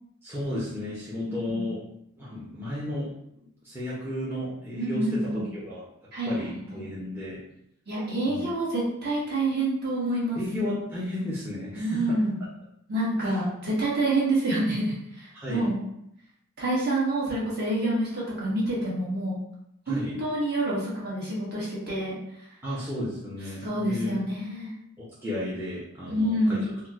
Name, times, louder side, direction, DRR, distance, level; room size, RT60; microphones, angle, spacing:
voice 1, 0.2-1.8 2.2-3.1 3.6-5.8 6.2-7.4 8.2-8.4 10.4-12.2 13.2-13.4 15.3-15.7 19.9-20.2 22.6-24.2 25.2-26.7, left 1 dB, 10° right, -9 dB, 0.5 m, -33 dB
voice 2, 4.8-5.4 6.1-6.8 7.9-10.4 11.7-12.4 12.9-15.8 16.6-19.4 19.9-22.2 23.6-24.7 26.1-26.6, right 1 dB, 50° right, -7 dB, 1.1 m, -27 dB
4.1 x 2.0 x 2.4 m, 0.78 s
head